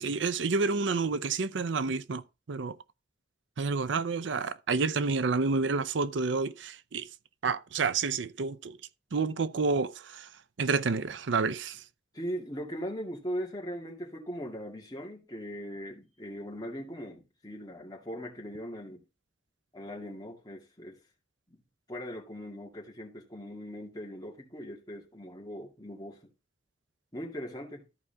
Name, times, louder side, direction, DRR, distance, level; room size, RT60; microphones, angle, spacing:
voice 1, 0.0-2.2 2.5-2.8 3.6-7.1 7.4-8.8 9.1-10.3 10.6-11.8, right 4 dB, 85° right, 0.6 m, -29 dB
voice 2, 12.1-19.0 19.7-21.0 21.9-26.2 27.1-27.8, equal, 20° left, 2.2 m, -40 dB
14.0 x 5.0 x 3.4 m
head